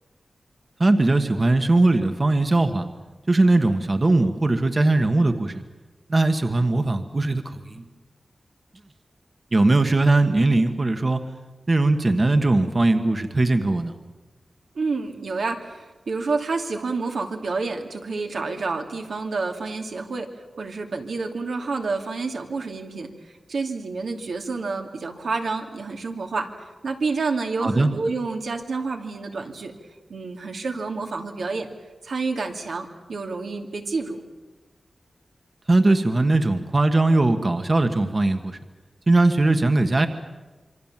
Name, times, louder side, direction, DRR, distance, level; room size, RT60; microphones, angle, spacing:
voice 1, 0.8-2.9 3.3-5.6 6.1-7.8 9.5-11.2 11.7-13.9 27.6-27.9 35.7-38.6 39.1-40.1, right 2 dB, 35° right, 7 dB, 1.4 m, -20 dB
voice 2, 14.7-20.3 20.6-29.7 30.1-31.7 32.0-34.2, right 4 dB, 85° right, 3 dB, 2.7 m, -29 dB
27.0 x 24.5 x 7.5 m, 1.2 s
wide cardioid pair, 120°, 0 cm